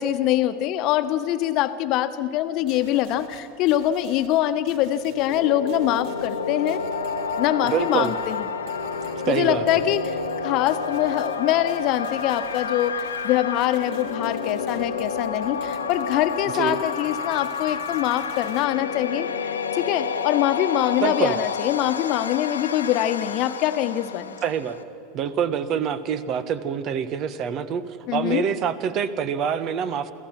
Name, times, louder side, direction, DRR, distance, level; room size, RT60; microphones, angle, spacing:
voice 1, 0.0-6.8 7.4-8.5 9.3-10.2 10.4-24.4 28.1-28.5, left 12 dB, 50° left, 10 dB, 1.2 m, -24 dB
sound 1, 2.7-18.6, right 5 dB, 60° right, 2.3 m, -49 dB
sound 2, 4.9-24.8, left 5 dB, 85° left, 1.2 m, -30 dB
voice 2, 7.6-8.1 9.2-9.6 16.5-16.8 21.0-21.3 24.4-24.8 25.1-27.8 28.1-30.1, right 8 dB, 45° right, 13 dB, 1.3 m, -25 dB
29.0 x 16.0 x 6.0 m, 2.6 s
hypercardioid pair, 85°, 0 cm